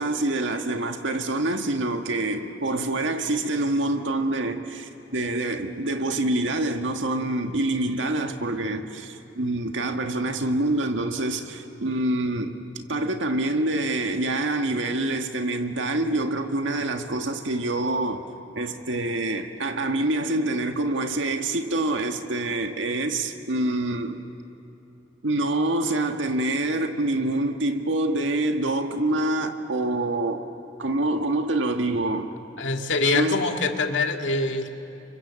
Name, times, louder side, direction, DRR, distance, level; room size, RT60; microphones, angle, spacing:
voice 1, 0.0-18.2 18.6-24.2 25.2-30.4 30.8-32.3 33.1-33.4, right 2 dB, 90° right, 1.7 m, -26 dB
voice 2, 32.6-34.7, left 3 dB, 85° left, 2.1 m, -24 dB
30.0 x 25.0 x 7.5 m
head